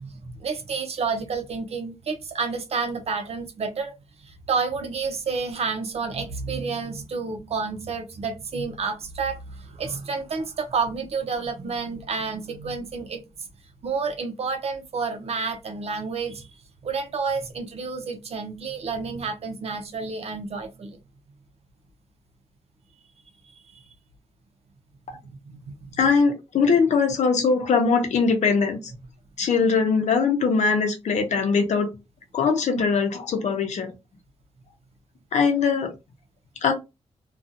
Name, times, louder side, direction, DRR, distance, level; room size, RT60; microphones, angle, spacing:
voice 1, 0.0-3.9 4.2-13.2 13.8-16.5 16.8-21.0 23.7-23.8 25.5-25.9, right 5 dB, 60° right, 0.6 m, -30 dB
voice 2, 26.0-28.9 29.4-31.9 32.3-33.9 35.3-35.9 36.6-36.7, left 5 dB, 75° left, 0.8 m, -21 dB
2.6 x 2.3 x 2.6 m
cardioid pair, 95°, 12 cm